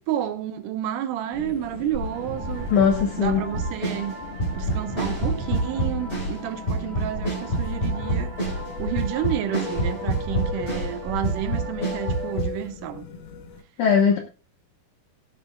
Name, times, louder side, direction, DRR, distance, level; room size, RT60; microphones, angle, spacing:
voice 1, 0.1-2.7 3.2-4.1 4.6-8.3 8.8-13.1, right 11 dB, 75° right, 2.0 m, -30 dB
sound 1, 1.3-13.6, left 5 dB, 80° left, 3.3 m, -38 dB
sound 2, 1.9-12.4, equal, 45° right, 4.6 m, -35 dB
voice 2, 2.7-3.4 13.8-14.2, left 6 dB, 65° left, 2.3 m, -19 dB
sound 3, 3.5-6.4 6.7-11.0 11.2-12.5, right 2 dB, 15° left, 4.3 m, -27 dB
17.0 x 10.5 x 2.3 m
omnidirectional pair, 4.4 m